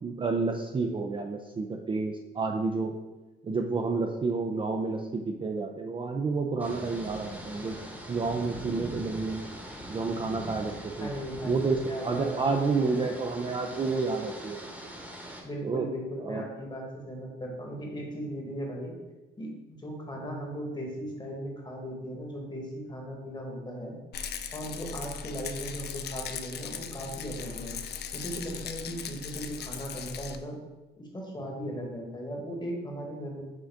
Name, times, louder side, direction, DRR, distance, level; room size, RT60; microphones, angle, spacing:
voice 1, 0.0-2.9 3.4-7.8 8.1-9.4 9.9-11.1 11.4-14.6 15.6-15.9 16.2-16.5, right 4 dB, 25° right, 3 dB, 0.3 m, -30 dB
sound 1, 6.6-15.4, right 1 dB, 5° right, 1.0 m, -42 dB
voice 2, 11.0-12.9 15.4-19.0 19.4-24.0 24.5-27.8 28.1-30.6 31.0-33.4, equal, 20° left, 0 dB, 1.2 m, -37 dB
Rattle, 24.1-30.4, left 7 dB, 55° left, 0.4 m, -38 dB
6.3 x 2.5 x 3.4 m, 1.1 s
cardioid pair, 90°, 20 cm